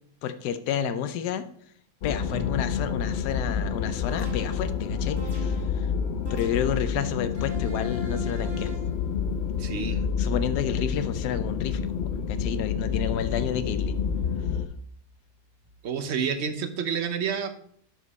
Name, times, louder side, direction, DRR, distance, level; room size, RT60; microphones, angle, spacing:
voice 1, 0.2-1.4 2.0-5.9 6.3-8.7 10.2-14.0, left 9 dB, 80° left, 11 dB, 1.3 m, -30 dB
sound 1, 2.0-14.7, left 6 dB, 65° left, 0.6 m, -28 dB
sound 2, 2.3-15.7, left 4 dB, 15° right, 1.7 m, -46 dB
sound 3, 4.1-4.7 5.2-5.8 6.3-6.9 7.4-8.9, right 1 dB, 85° right, 3.1 m, -41 dB
voice 2, 9.6-10.0 15.8-17.5, right 6 dB, 50° right, 9 dB, 1.0 m, -29 dB
10.5 x 5.2 x 4.1 m, 0.64 s
omnidirectional pair, 1.7 m